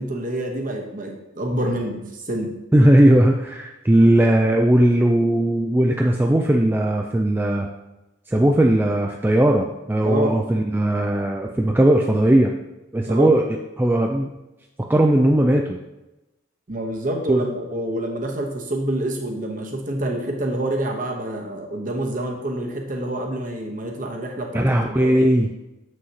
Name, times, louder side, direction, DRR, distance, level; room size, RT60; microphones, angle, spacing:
voice 1, 0.0-2.5 10.0-10.4 13.1-13.3 16.7-25.3, right 1 dB, 40° right, 1 dB, 1.0 m, -27 dB
voice 2, 2.7-7.7 8.3-12.5 12.9-13.4 13.8-14.3 14.9-15.8 17.3-17.4 24.5-25.5, right 1 dB, 10° right, 1 dB, 0.3 m, -18 dB
7.4 x 6.2 x 2.8 m, 0.99 s
head